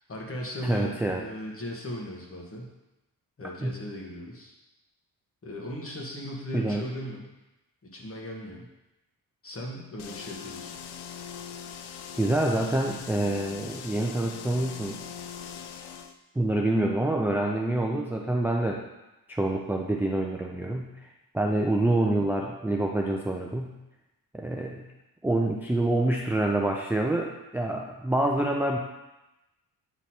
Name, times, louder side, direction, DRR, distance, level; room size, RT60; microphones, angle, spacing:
voice 1, 0.1-2.7 3.4-4.5 5.4-7.3 7.8-8.7 9.4-10.8 21.4-21.6, left 1 dB, 35° left, -1 dB, 1.3 m, -37 dB
voice 2, 0.6-1.2 3.6-3.8 6.5-6.8 12.2-15.0 16.4-18.8 19.3-21.0 21.3-23.8 24.3-24.9 25.2-28.8, right 1 dB, 5° right, 0 dB, 0.4 m, -26 dB
sound 1, 10.0-16.2, left 7 dB, 85° left, 0.5 m, -41 dB
8.2 x 3.0 x 4.3 m, 0.98 s
wide cardioid pair, 120°, 39 cm